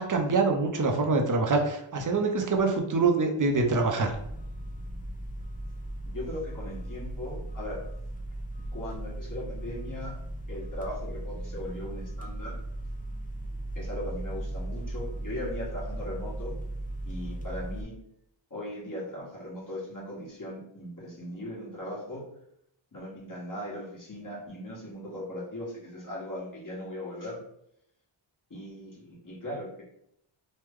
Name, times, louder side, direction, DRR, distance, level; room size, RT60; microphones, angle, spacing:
voice 1, 0.1-4.1, right 3 dB, 40° right, 3 dB, 0.6 m, -25 dB
sound 1, 4.1-17.8, right 1 dB, 20° left, 0.5 m, -37 dB
voice 2, 6.0-7.8 8.7-10.1 10.5-12.5 13.7-16.6 17.0-17.9 18.5-22.2 22.9-27.4 28.5-29.8, left 1 dB, 40° left, -6 dB, 1.3 m, -38 dB
3.1 x 2.2 x 3.5 m, 0.74 s
wide cardioid pair, 75°, 48 cm